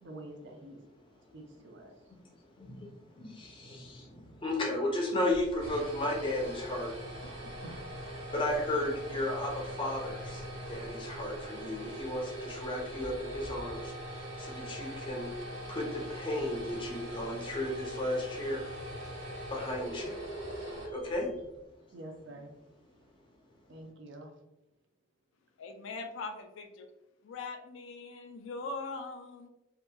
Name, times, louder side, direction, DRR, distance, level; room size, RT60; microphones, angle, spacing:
voice 1, 0.0-0.8 1.3-1.9 7.6-7.9 21.9-22.5 23.7-24.3, right 1 dB, 65° right, 3 dB, 0.5 m, -47 dB
voice 2, 2.3-7.2 8.3-15.3 15.7-18.7 19.5-20.2 20.9-21.3, left 1 dB, 25° left, -1 dB, 0.5 m, -34 dB
sound 1, 5.3-21.5, right 1 dB, 85° right, 1.3 m, -42 dB
voice 3, 25.6-26.9 27.2-29.5, left 3 dB, 80° left, 5 dB, 0.4 m, -41 dB
2.8 x 2.3 x 2.2 m, 0.91 s
head